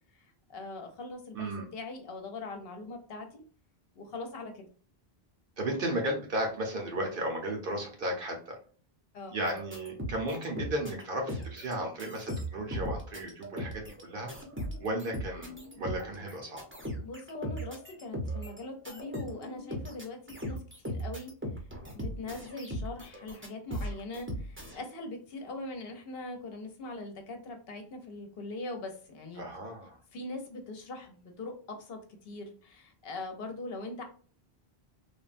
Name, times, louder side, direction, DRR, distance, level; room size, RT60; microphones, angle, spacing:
voice 1, 0.5-3.4 4.0-4.7 9.1-9.4 17.0-21.3 21.9-29.4 30.1-34.0, left 2 dB, 70° left, 4 dB, 0.9 m, -41 dB
voice 2, 1.3-1.7 5.6-8.6 9.3-14.3 14.8-16.6 29.4-30.0, right 1 dB, 60° right, 2 dB, 1.0 m, -34 dB
sound 1, 9.5-11.0 11.3-11.7 12.0-24.8, equal, 15° right, 0.6 m, -38 dB
3.4 x 2.1 x 2.5 m, 0.42 s
omnidirectional pair, 1.0 m